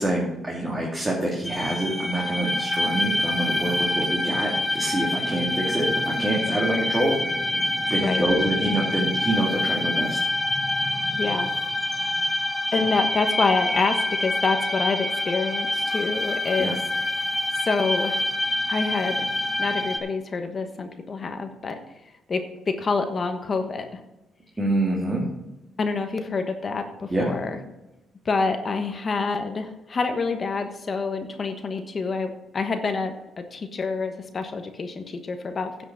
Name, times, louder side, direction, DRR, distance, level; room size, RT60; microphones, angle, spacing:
voice 1, 0.0-7.2 7.9-10.2 16.6-16.7 24.6-25.2 27.1-27.3, right 1 dB, 15° right, -3 dB, 2.6 m, -26 dB
sound 1, 1.4-20.0, left 1 dB, 5° left, 1.2 m, -26 dB
voice 2, 11.1-11.5 12.3-12.5 12.7-16.8 17.6-18.2 18.7-19.3 19.6-21.8 22.3-24.0 25.8-27.6 28.2-35.8, left 4 dB, 40° left, 6 dB, 1.2 m, -27 dB
10.0 x 5.9 x 7.3 m, 0.98 s
cardioid pair, 90°, 0 cm